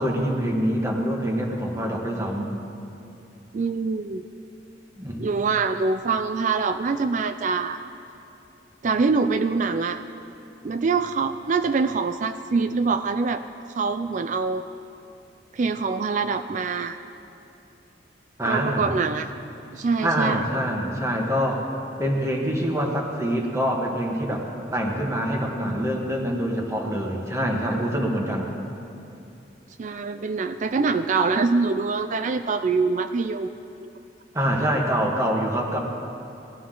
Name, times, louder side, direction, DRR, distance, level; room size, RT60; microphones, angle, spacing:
voice 1, 0.0-2.5 5.0-5.2 18.4-18.9 20.0-21.7 22.0-24.5 24.7-28.5 34.3-35.8, equal, 15° right, 0 dB, 1.5 m, -25 dB
voice 2, 3.5-4.2 5.2-7.8 8.8-10.0 10.6-13.4 13.8-14.6 15.5-17.0 18.5-19.3 19.7-20.4 29.8-33.5, right 4 dB, 45° right, 9 dB, 0.4 m, -24 dB
19.0 x 12.5 x 3.9 m, 2.8 s
head